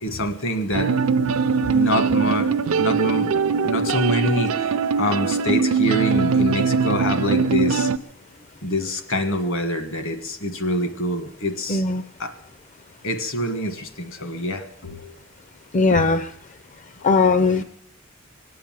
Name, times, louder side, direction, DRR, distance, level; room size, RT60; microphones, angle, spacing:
voice 1, 0.0-0.9 1.7-2.5 2.8-3.3 3.6-4.5 5.0-7.9 8.6-11.8 12.2-12.3 13.0-15.1 15.9-16.0, equal, 65° left, 8 dB, 1.6 m, -25 dB
sound 1, 0.7-8.0, right 5 dB, 70° right, 0.5 m, -21 dB
voice 2, 11.7-12.0 15.7-16.2 17.0-17.6, left 3 dB, 35° left, 11 dB, 0.5 m, -18 dB
23.0 x 8.5 x 7.5 m, 0.75 s
head